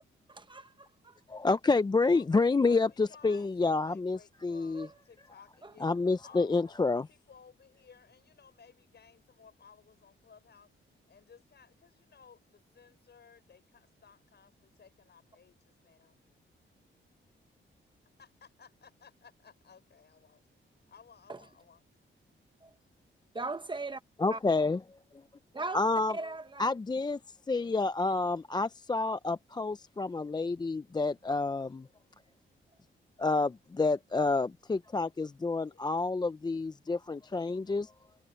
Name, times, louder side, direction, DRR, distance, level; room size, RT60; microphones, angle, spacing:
voice 1, 0.3-1.2 4.5-5.0 5.6-5.7 21.3-21.4 22.6-22.7 23.3-24.0 24.3-24.4 25.5-25.8 26.1-26.7, right 3 dB, 20° right, 1.0 m, -39 dB
voice 2, 1.3-4.9 5.8-7.1 24.2-24.8 25.7-26.1 26.6-27.2 27.5-31.9 33.2-37.9, left 3 dB, 20° left, 0.5 m, -29 dB
voice 3, 2.1-5.9 6.2-6.7 7.1-10.7 11.1-16.2 18.2-20.4 20.9-21.8 35.7-35.8 37.5-37.8, left 6 dB, 55° left, 6.1 m, -58 dB
cardioid pair, 105°, 21 cm